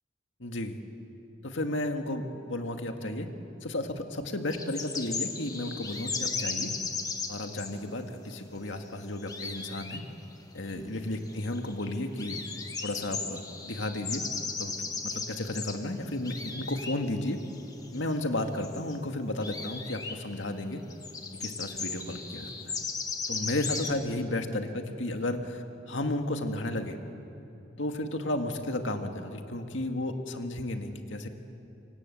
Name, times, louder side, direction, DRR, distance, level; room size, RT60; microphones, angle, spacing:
voice 1, 0.4-0.8 1.4-3.3 3.6-6.7 7.3-10.0 10.5-12.4 12.8-14.2 14.6-14.7 15.0-17.4 17.9-20.8 21.4-22.8 23.3-27.0 27.8-31.3, left 1 dB, 80° left, 5 dB, 2.0 m, -33 dB
sound 1, 4.5-7.8 8.8-8.9 9.0-10.0 10.3-10.4 10.7-10.8 11.3-11.9 12.2-15.8 16.1-16.9 17.2-18.1 18.4-18.9 19.4-20.1 20.6-20.7 20.9-23.9, left 4 dB, 20° left, 1.6 m, -36 dB
26.0 x 24.5 x 8.6 m, 2.8 s
head